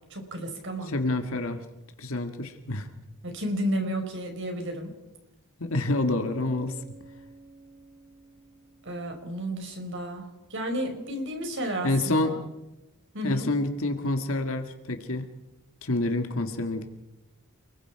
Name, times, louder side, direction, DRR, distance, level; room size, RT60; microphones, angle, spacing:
voice 1, 0.1-0.9 3.2-4.9 8.8-12.4 13.1-13.5, right 1 dB, 55° right, 4 dB, 4.8 m, -32 dB
voice 2, 0.9-1.6 2.0-2.9 5.6-6.7 11.8-12.4 13.2-15.3 15.8-17.0, left 2 dB, 65° left, 6 dB, 1.7 m, -28 dB
Bass guitar, 6.0-9.8, right 3 dB, 35° right, 2.5 m, -50 dB
29.5 x 21.0 x 4.7 m, 1.0 s
head